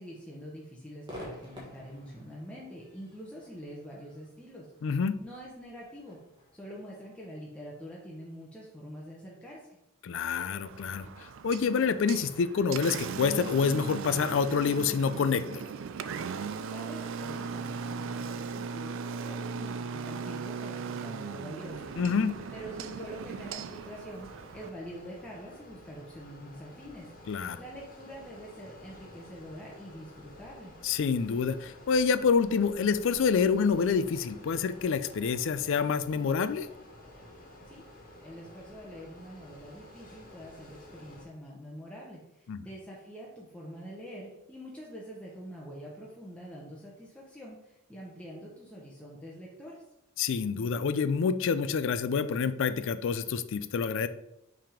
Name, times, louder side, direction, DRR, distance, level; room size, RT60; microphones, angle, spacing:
voice 1, 0.0-4.7 5.2-6.2 6.5-9.8 16.7-21.9 22.5-27.1 27.6-30.7 37.7-37.8 38.2-49.8, equal, 5° left, -5 dB, 0.8 m, -45 dB
Crowd / Fireworks, 1.0-8.4, equal, 20° right, 1.4 m, -51 dB
voice 2, 4.8-5.1 10.0-15.7 22.0-22.3 27.3-27.6 30.8-36.7 42.5-42.6 50.2-54.1, left 5 dB, 60° left, 13 dB, 0.4 m, -27 dB
Engine, 10.6-24.7, right 5 dB, 60° right, 0.4 m, -38 dB
sound 1, 21.7-41.3, left 1 dB, 40° left, 1.4 m, -51 dB
5.6 x 3.5 x 5.0 m, 0.87 s
head